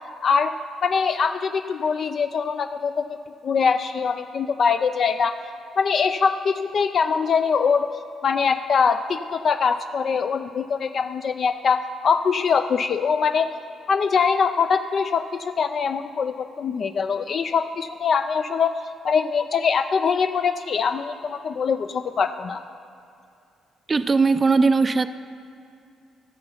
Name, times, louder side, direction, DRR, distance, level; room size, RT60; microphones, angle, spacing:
voice 1, 0.2-0.5 0.8-3.2 3.4-5.3 5.8-7.9 8.2-13.5 13.9-18.7 19.0-22.6, left 6 dB, 55° left, 8 dB, 0.4 m, -23 dB
voice 2, 23.9-25.1, right 4 dB, 30° right, 12 dB, 0.4 m, -19 dB
15.5 x 6.9 x 5.6 m, 2.6 s
cardioid pair, 90°, 0 cm